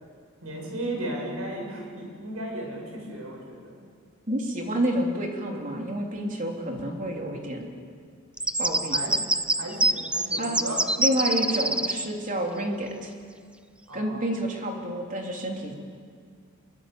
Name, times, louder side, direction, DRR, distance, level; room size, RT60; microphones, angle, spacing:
voice 1, 0.4-3.8 8.9-9.1 9.6-10.7 13.9-14.2, right 1 dB, 90° right, 0 dB, 7.3 m, -35 dB
voice 2, 4.3-7.7 8.6-9.0 10.4-10.6 11.0-13.1 13.9-15.7, equal, 40° right, 1 dB, 3.3 m, -29 dB
sound 1, 8.4-12.0, right 2 dB, 5° right, 0.6 m, -25 dB
25.0 x 22.5 x 7.9 m, 2.1 s
head